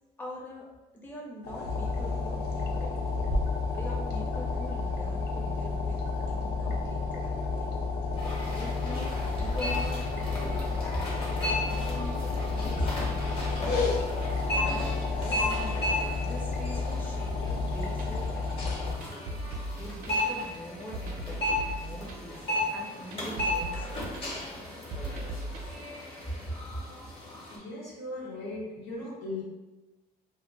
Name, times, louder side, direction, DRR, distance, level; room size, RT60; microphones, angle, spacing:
voice 1, 0.2-3.3 3.7-6.0 6.3-7.7 8.4-14.0 14.6-15.9 16.2-19.4 19.8-24.6 26.2-26.3, equal, 10° left, -4 dB, 0.6 m, -43 dB
sound 1, 1.4-18.9, left 3 dB, 70° left, 0.4 m, -31 dB
sound 2, 8.2-27.6, left 1 dB, 30° left, 0.9 m, -35 dB
sound 3, 17.5-25.7, right 1 dB, 55° right, 0.5 m, -39 dB
voice 2, 27.5-29.4, left 2 dB, 85° left, -7 dB, 0.9 m, -38 dB
2.2 x 2.0 x 3.2 m, 1.1 s
cardioid pair, 110°, 17 cm